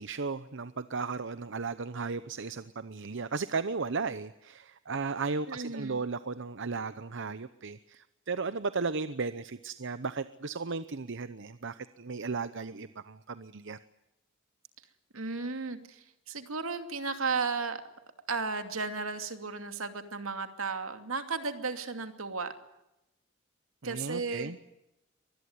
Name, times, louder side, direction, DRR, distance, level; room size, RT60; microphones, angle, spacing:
voice 1, 0.0-13.8 23.8-24.6, right 4 dB, 60° right, 13 dB, 0.8 m, -35 dB
voice 2, 5.5-6.0 15.1-17.8 18.3-22.5 23.8-24.5, right 4 dB, 75° right, 8 dB, 2.6 m, -34 dB
24.5 x 20.5 x 9.6 m, 0.91 s
head